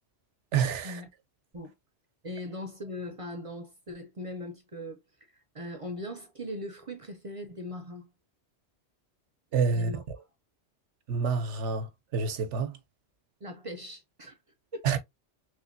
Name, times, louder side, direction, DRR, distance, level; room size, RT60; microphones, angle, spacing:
voice 1, 0.5-1.0 9.5-9.9 11.1-12.8 14.8-15.0, right 5 dB, 85° right, 1.0 m, -28 dB
voice 2, 2.2-5.0 5.5-8.1 9.7-10.0 13.4-14.4 14.7-14.9, left 1 dB, 40° right, 0.5 m, -39 dB
3.2 x 3.2 x 2.6 m
omnidirectional pair, 1.2 m